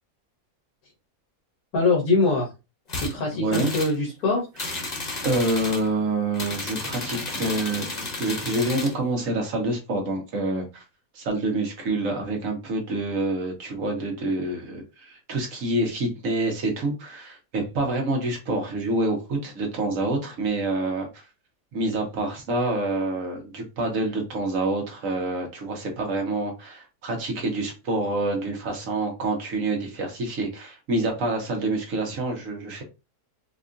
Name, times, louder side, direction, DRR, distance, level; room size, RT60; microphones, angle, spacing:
voice 1, 1.7-2.5 3.0-4.5, left 3 dB, 85° left, 1.5 m, -23 dB
sound 1, 2.9-3.1 3.5-3.9 4.6-5.9 6.3-9.0, left 2 dB, 35° left, 0.8 m, -32 dB
voice 2, 3.3-3.7 5.2-10.8 11.1-21.2 21.7-32.8, right 2 dB, 65° right, 1.4 m, -27 dB
4.7 x 2.3 x 2.6 m
omnidirectional pair, 1.5 m